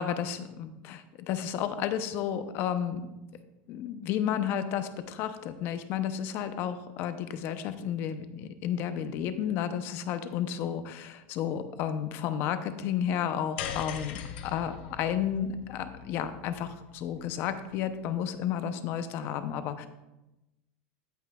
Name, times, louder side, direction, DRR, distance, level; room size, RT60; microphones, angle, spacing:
voice 1, 0.0-3.1 3.7-19.9, left 9 dB, 45° left, 10 dB, 0.6 m, -32 dB
sound 1, 13.6-18.0, left 8 dB, 75° left, 0.9 m, -41 dB
15.5 x 5.5 x 2.3 m, 0.98 s
supercardioid pair, 155°, 5 cm